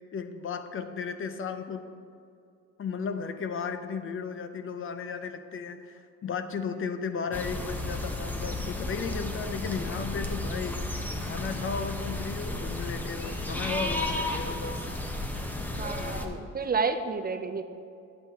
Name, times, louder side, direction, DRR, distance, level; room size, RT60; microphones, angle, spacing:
voice 1, 0.1-1.9 2.8-10.8 11.2-14.8 16.0-16.4, left 5 dB, 45° left, 8 dB, 0.6 m, -35 dB
sound 1, 7.3-16.3, left 1 dB, 5° left, 0.7 m, -33 dB
voice 2, 15.8-17.6, right 5 dB, 30° right, 9 dB, 0.4 m, -30 dB
9.1 x 7.8 x 2.8 m, 2.4 s
cardioid pair, 90°, 30 cm